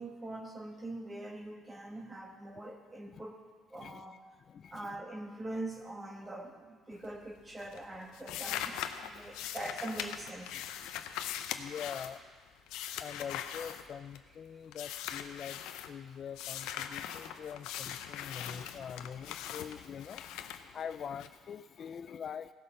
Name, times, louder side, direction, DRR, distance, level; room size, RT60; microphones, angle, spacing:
voice 1, 0.0-3.4 3.7-4.2 4.7-10.6, right 2 dB, 20° right, 3 dB, 1.6 m, -43 dB
voice 2, 4.5-5.0 9.1-9.5 10.5-12.2 13.0-22.5, left 7 dB, 50° left, 13 dB, 0.3 m, -44 dB
sound 1, 6.9-7.3 7.6-14.4 14.7-15.9 16.3-21.3, left 10 dB, 85° left, 0.6 m, -41 dB
16.0 x 5.5 x 6.6 m, 1.5 s
cardioid pair, 100°, 0 cm